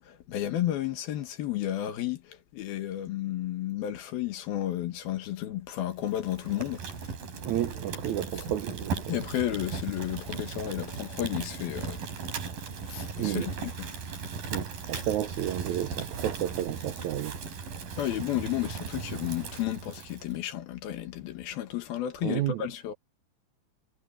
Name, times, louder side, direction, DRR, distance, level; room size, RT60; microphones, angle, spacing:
voice 1, 0.0-6.8 9.1-12.0 12.9-13.9 18.0-22.9, left 13 dB, 70° left, 3.4 m, -32 dB
Fire, 6.0-20.4, right 5 dB, 65° right, 5.4 m, -37 dB
voice 2, 7.4-9.2 13.2-13.5 14.5-17.4 22.2-22.6, right 12 dB, 80° right, 1.7 m, -31 dB
omnidirectional pair, 4.5 m